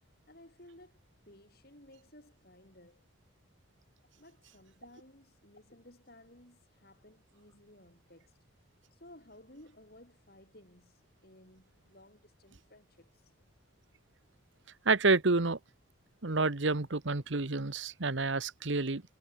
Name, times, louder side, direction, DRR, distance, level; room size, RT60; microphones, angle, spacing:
voice 1, 0.3-1.0 1.3-3.0 4.2-8.4 8.9-13.3, left 1 dB, 50° left, 7.2 m, -57 dB
voice 2, 14.8-15.6 16.2-19.0, right 3 dB, 70° right, 1.3 m, -29 dB
head